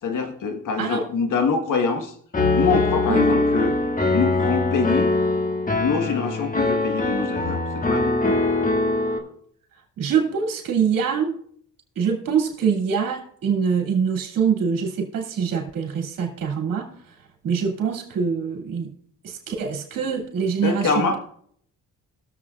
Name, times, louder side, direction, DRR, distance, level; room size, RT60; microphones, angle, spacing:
voice 1, 0.0-2.1 2.5-3.7 4.1-5.1 5.8-8.1 20.6-21.2, left 5 dB, 70° left, 5 dB, 1.5 m, -25 dB
Piano, 2.3-9.2, left 2 dB, 25° left, 1.6 m, -22 dB
voice 2, 10.0-11.3 12.0-17.1 17.4-18.9 19.2-21.2, right 6 dB, 80° right, 1 dB, 2.7 m, -24 dB
21.5 x 7.4 x 2.4 m, 0.63 s
cardioid pair, 95°, 33 cm